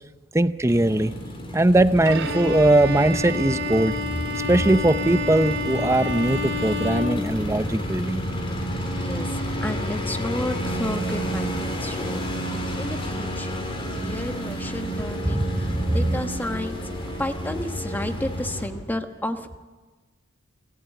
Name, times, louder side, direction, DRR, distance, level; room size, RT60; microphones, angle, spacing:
voice 1, 0.3-1.1 1.5-4.0 4.5-8.2 14.0-14.1 15.2-16.2, right 1 dB, 15° right, 12 dB, 0.7 m, -20 dB
sound 1, 0.6-18.7, equal, 30° left, 3.6 m, -31 dB
sound 2, 1.6-18.8, left 1 dB, 80° left, 2.1 m, -38 dB
Bowed string instrument, 2.0-8.0, left 2 dB, 70° right, 3.7 m, -30 dB
voice 2, 8.9-12.3 12.8-13.6 14.0-16.8 17.2-19.6, left 1 dB, 10° left, 7 dB, 1.2 m, -32 dB
26.5 x 15.0 x 8.3 m, 1.3 s
head